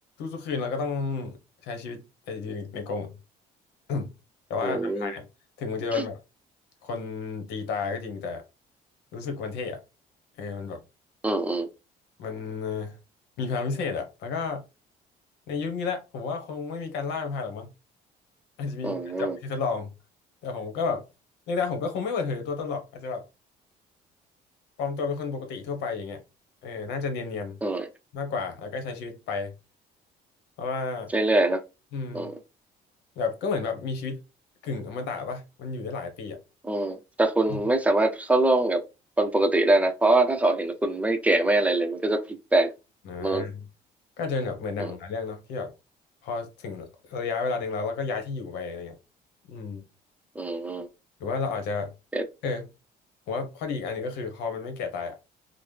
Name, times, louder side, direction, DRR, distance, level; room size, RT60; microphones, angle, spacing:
voice 1, 0.2-3.2 3.9-4.1 4.5-5.3 5.6-6.2 6.8-8.4 9.1-9.8 10.4-10.8 12.2-13.0 13.4-14.6 15.5-17.7 18.6-19.9 20.4-21.1 21.5-23.2 24.8-26.2 26.6-27.6 28.1-29.5 30.6-31.1 31.9-32.3 33.2-34.2 34.6-36.4 37.5-37.6 43.0-43.7 44.2-45.7 46.2-48.9 49.5-49.9 51.2-51.9 52.4-52.7 53.3-55.2, left 4 dB, 85° left, 1.0 m, -31 dB
voice 2, 4.6-5.1 5.9-6.0 11.2-11.7 18.8-19.4 27.6-27.9 31.1-31.6 32.1-32.3 36.6-38.8 39.2-42.7 43.2-43.4 44.8-44.9 50.4-50.9 52.1-52.2, right 2 dB, 10° right, 0.6 m, -23 dB
3.8 x 2.1 x 3.2 m
cardioid pair, 110°, 17 cm